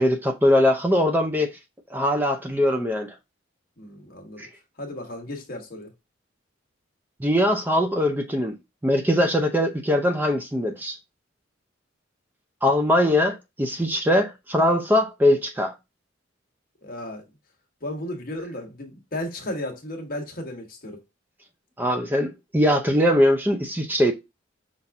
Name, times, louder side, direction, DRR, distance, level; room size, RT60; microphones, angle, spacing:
voice 1, 0.0-1.6 1.9-3.1 4.4-4.5 7.2-8.5 8.8-11.0 12.6-15.7 21.8-24.1, left 1 dB, 10° right, 0.5 m, -21 dB
voice 2, 3.8-4.5 4.8-5.9 16.8-17.2 17.8-21.0, left 1 dB, 45° left, 1.2 m, -34 dB
5.6 x 2.6 x 3.4 m
head